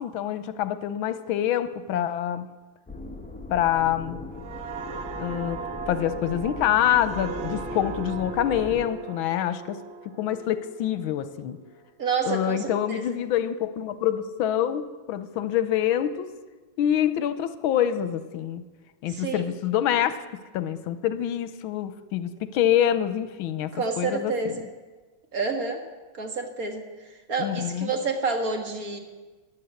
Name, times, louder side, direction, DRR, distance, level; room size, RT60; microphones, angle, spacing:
voice 1, 0.0-2.5 3.5-4.2 5.2-11.6 12.2-16.3 16.8-18.6 19.0-24.5 27.4-27.9, left 10 dB, 85° left, 13 dB, 1.6 m, -26 dB
sound 1, 2.9-8.9, left 2 dB, 15° left, 0.3 m, -39 dB
sound 2, 4.3-11.8 12.2-12.5, right 5 dB, 75° right, 1.8 m, -38 dB
voice 2, 12.0-13.1 19.1-19.5 23.7-24.7 25.3-25.8 26.1-29.0, right 4 dB, 45° right, 4 dB, 1.9 m, -29 dB
14.5 x 10.5 x 8.3 m, 1.3 s
omnidirectional pair, 2.2 m